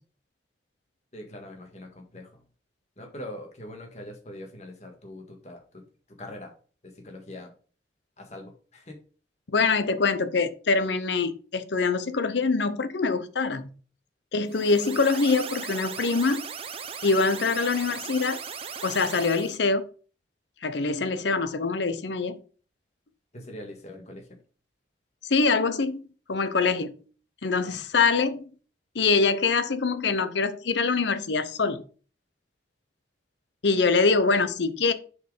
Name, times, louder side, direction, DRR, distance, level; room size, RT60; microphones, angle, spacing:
voice 1, 1.1-2.4 3.0-5.8 6.2-6.5 6.8-7.5 8.2-9.0 23.3-24.2 27.6-27.8, left 1 dB, 40° left, 3 dB, 1.7 m, -42 dB
voice 2, 9.5-13.7 14.3-16.4 17.0-18.4 18.8-19.9 20.6-22.4 25.2-26.0 26.3-26.9 27.4-28.5 28.9-31.8 33.6-34.9, left 4 dB, 75° left, 11 dB, 0.7 m, -24 dB
sound 1, 14.5-19.6, right 6 dB, 30° right, 0.6 m, -38 dB
6.6 x 4.7 x 4.9 m, 0.39 s
head